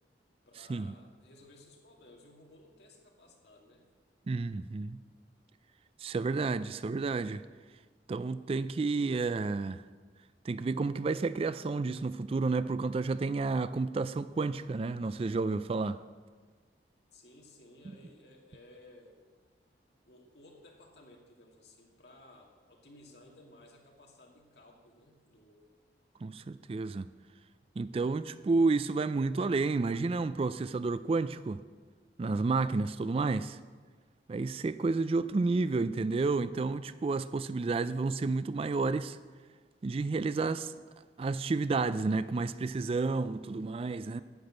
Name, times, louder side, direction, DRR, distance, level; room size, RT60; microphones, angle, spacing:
voice 1, 0.5-3.9 17.1-19.2 20.0-25.7, left 1 dB, 70° left, 0 dB, 2.1 m, -57 dB
voice 2, 4.3-5.0 6.0-7.4 8.1-9.8 10.4-16.0 26.2-27.1 27.8-31.6 32.2-33.6 34.3-39.2 39.8-40.7 41.2-44.2, right 3 dB, 35° right, 14 dB, 0.3 m, -31 dB
10.5 x 6.1 x 8.7 m, 1.4 s
head